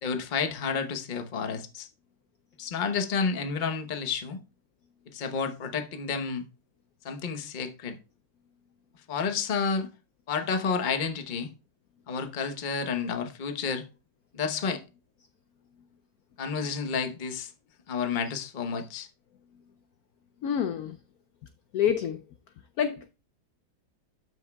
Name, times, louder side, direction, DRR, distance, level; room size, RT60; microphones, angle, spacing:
voice 1, 0.0-1.9 2.6-4.4 5.1-6.4 7.0-8.0 9.1-9.9 10.3-11.5 12.1-13.9 14.3-14.8 16.4-17.5 17.9-19.1, left 5 dB, 40° left, 0.6 m, -30 dB
voice 2, 20.4-21.0 21.7-22.2 22.8-23.1, left 8 dB, 80° left, 0.8 m, -27 dB
12.5 x 6.3 x 2.3 m
omnidirectional pair, 2.1 m